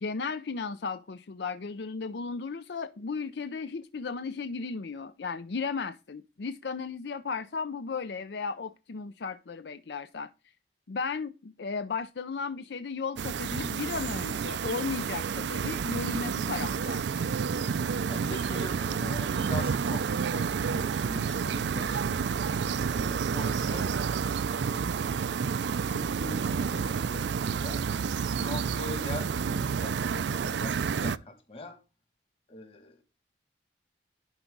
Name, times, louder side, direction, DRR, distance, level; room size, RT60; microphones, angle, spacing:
voice 1, 0.0-10.3 10.9-17.2, left 4 dB, 70° left, 0.5 m, -35 dB
sound 1, 13.2-31.2, right 6 dB, 75° right, 0.4 m, -30 dB
voice 2, 18.1-22.2 22.9-23.9 24.7-27.8 28.4-31.8 32.5-33.0, left 1 dB, 30° left, 1.9 m, -42 dB
11.0 x 4.7 x 3.8 m
head